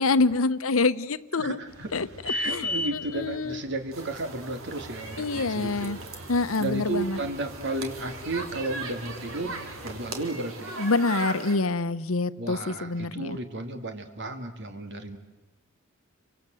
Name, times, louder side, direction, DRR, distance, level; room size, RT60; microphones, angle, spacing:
voice 1, 0.0-1.6 1.9-3.6 5.2-6.0 6.3-7.2 10.8-13.4, left 3 dB, 85° left, 14 dB, 1.0 m, -26 dB
voice 2, 1.3-1.9 2.3-6.1 6.6-9.6 9.8-10.7 12.4-15.2, right 2 dB, 55° right, 7 dB, 2.8 m, -33 dB
sound 1, 1.7-10.1, left 2 dB, 90° right, 5.5 m, -39 dB
sound 2, 3.9-11.5, right 3 dB, 70° right, 3.4 m, -39 dB
30.0 x 24.5 x 7.9 m, 1.0 s
head